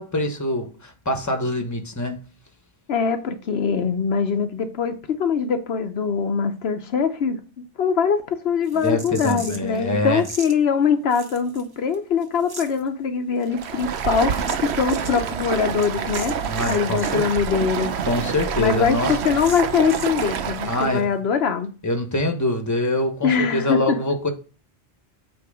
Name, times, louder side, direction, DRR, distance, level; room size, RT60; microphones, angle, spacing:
voice 1, 0.0-2.2 8.8-10.2 16.5-17.2 18.1-19.2 20.7-21.2 21.8-24.3, left 1 dB, 15° left, 1.1 m, -24 dB
voice 2, 2.9-7.4 7.8-16.3 16.7-17.9 18.6-21.7 23.2-24.0, left 6 dB, 75° left, 1.0 m, -22 dB
sound 1, 8.6-9.8 10.2-10.5 11.1-11.9 12.2-12.8 13.4-17.2 17.5-17.6 17.8-17.9 18.3-18.4 18.7-18.8 19.4-20.4, right 2 dB, 25° right, 0.9 m, -39 dB
Stream, 13.5-21.0, right 7 dB, 90° right, 0.9 m, -27 dB
8.6 x 3.2 x 4.8 m
omnidirectional pair, 1.1 m